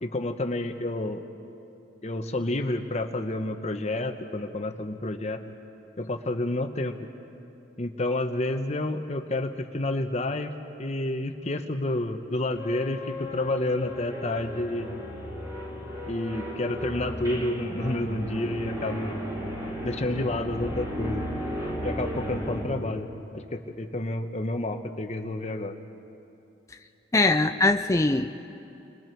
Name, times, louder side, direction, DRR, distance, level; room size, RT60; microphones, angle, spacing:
voice 1, 0.0-1.2 2.0-5.4 6.0-7.0 7.8-10.5 10.8-15.0 16.1-19.2 19.8-21.3 21.8-23.1 23.3-25.7, left 1 dB, 40° left, 6 dB, 1.0 m, -29 dB
sound 1, 12.5-22.6, equal, 20° right, 3.3 m, -35 dB
voice 2, 27.1-28.5, left 2 dB, 15° left, 6 dB, 0.5 m, -22 dB
30.0 x 23.0 x 4.6 m, 2.8 s
head